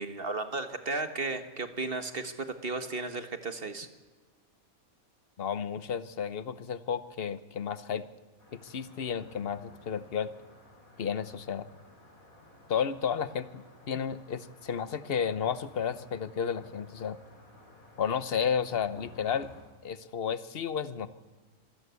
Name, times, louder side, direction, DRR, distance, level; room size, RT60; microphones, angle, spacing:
voice 1, 0.0-3.9, right 3 dB, 40° right, 9 dB, 1.6 m, -34 dB
voice 2, 5.4-8.0 8.5-10.3 11.0-11.7 12.7-17.2 18.0-19.5 19.8-21.1, left 7 dB, 45° left, 14 dB, 1.0 m, -32 dB
sound 1, 8.4-19.6, left 2 dB, 70° left, 4.8 m, -55 dB
26.0 x 15.0 x 8.2 m, 1.3 s
omnidirectional pair, 1.5 m